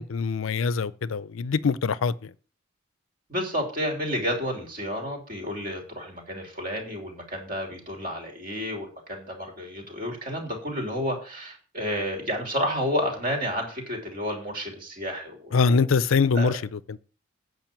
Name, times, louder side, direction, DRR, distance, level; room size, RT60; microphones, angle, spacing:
voice 1, 0.0-2.3 15.5-17.0, left 5 dB, 80° left, 0.5 m, -24 dB
voice 2, 3.3-15.8 16.3-16.5, equal, 45° right, 3.2 m, -31 dB
9.0 x 5.4 x 7.4 m
head